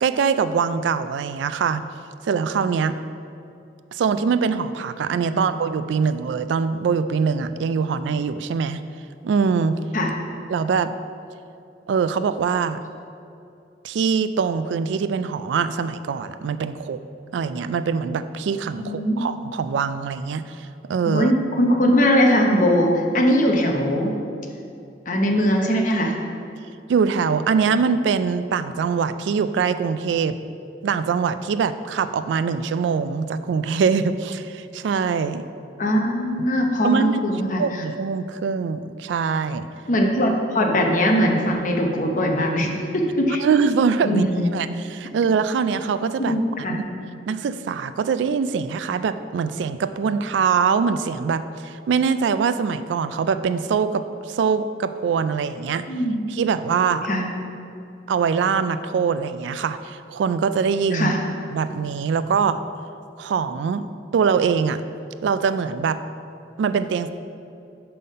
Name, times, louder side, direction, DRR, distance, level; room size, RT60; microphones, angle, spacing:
voice 1, 0.0-1.8 2.2-2.9 3.9-8.8 9.2-9.8 10.5-10.9 11.9-12.8 13.8-17.0 17.3-21.3 26.9-30.3 30.8-35.4 36.8-37.2 37.6-39.7 43.4-44.2 44.5-46.4 46.7-46.8 47.3-55.8 56.3-57.1 58.1-61.1 61.5-62.6 63.2-63.9 64.1-64.8 65.2-66.0 66.6-67.1, right 6 dB, 80° right, 12 dB, 0.3 m, -23 dB
voice 2, 18.8-19.2 21.1-24.1 25.1-26.1 35.8-37.6 39.9-43.4 44.0-44.6 46.2-46.8 55.9-56.2 57.0-57.2 60.9-61.2, equal, 45° left, 1 dB, 0.8 m, -20 dB
5.5 x 5.5 x 5.3 m, 2.6 s
head